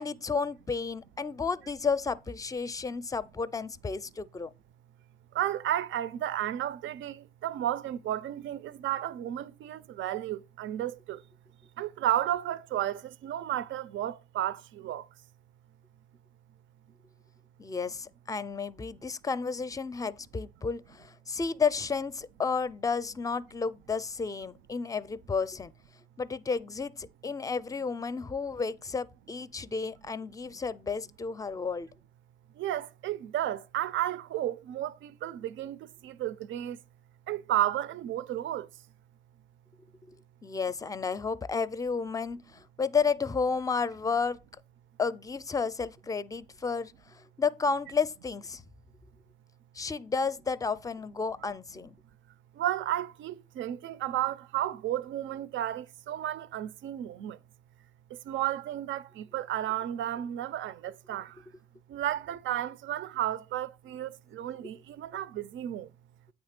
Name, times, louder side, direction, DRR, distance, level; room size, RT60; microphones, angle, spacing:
voice 1, 0.0-4.5 17.6-25.7 26.2-31.9 40.4-44.4 45.0-48.6 49.7-52.0, left 5 dB, 15° left, 0.5 m, -32 dB
voice 2, 5.3-11.2 11.8-15.1 32.6-36.8 37.3-38.7 52.5-57.4 58.1-61.4 61.9-65.9, right 12 dB, 75° right, 0.5 m, -33 dB
8.6 x 3.5 x 5.8 m
cardioid pair, 90°, 20 cm